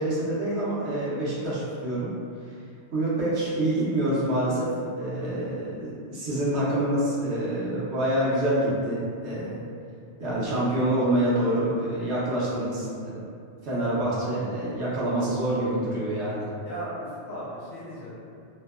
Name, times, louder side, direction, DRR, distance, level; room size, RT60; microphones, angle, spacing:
voice 1, 0.0-2.1 2.9-4.7 5.0-9.6 10.2-13.3 13.6-16.5, right 1 dB, 75° right, -8 dB, 1.0 m, -26 dB
voice 2, 16.6-18.5, equal, 60° left, -7 dB, 0.8 m, -38 dB
2.7 x 2.1 x 2.3 m, 2.4 s
omnidirectional pair, 1.2 m